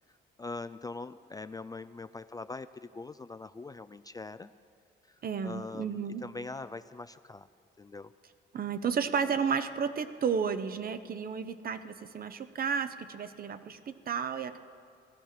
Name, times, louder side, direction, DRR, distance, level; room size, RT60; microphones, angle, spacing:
voice 1, 0.4-4.5 5.1-5.2 5.4-7.5 7.8-8.1, left 3 dB, 20° left, 13 dB, 0.3 m, -42 dB
voice 2, 5.2-6.2 8.5-14.6, right 6 dB, 50° right, 11 dB, 0.8 m, -32 dB
18.0 x 13.0 x 5.9 m, 2.3 s
cardioid pair, 90°, 20 cm